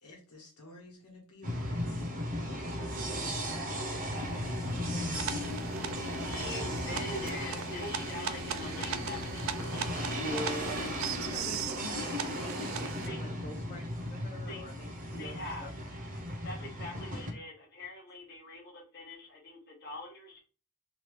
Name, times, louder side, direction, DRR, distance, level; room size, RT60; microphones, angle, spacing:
voice 1, 0.0-2.6 12.4-12.5, left 1 dB, 90° left, 1.3 m, -53 dB
sound 1, 1.4-17.3, equal, 35° right, 0.7 m, -36 dB
sound 2, 4.2-11.7, left 4 dB, 70° left, 0.4 m, -45 dB
sound 3, 5.1-13.1, right 8 dB, 60° right, 0.3 m, -39 dB
voice 2, 5.9-10.3 13.0-13.2 14.5-14.7 15.2-15.7 16.4-20.4, left 2 dB, 45° left, 1.0 m, -43 dB
voice 3, 10.1-15.7, equal, 25° left, 0.6 m, -44 dB
2.9 x 2.4 x 3.2 m
head